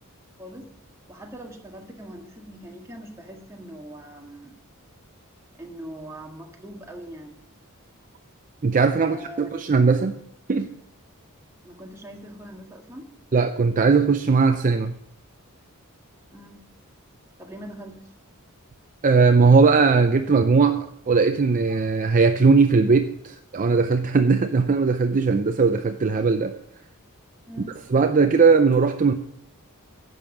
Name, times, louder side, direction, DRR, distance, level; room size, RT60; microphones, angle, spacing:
voice 1, 0.4-0.7 1.1-4.6 5.6-7.4 9.0-9.5 11.6-13.1 16.3-16.7 17.4-18.1 27.5-27.8, equal, 15° right, 1 dB, 1.7 m, -41 dB
voice 2, 8.6-10.2 10.5-10.7 13.3-15.0 19.0-26.6 27.9-29.1, right 4 dB, 35° right, 7 dB, 0.5 m, -19 dB
10.5 x 7.0 x 7.2 m, 0.72 s
head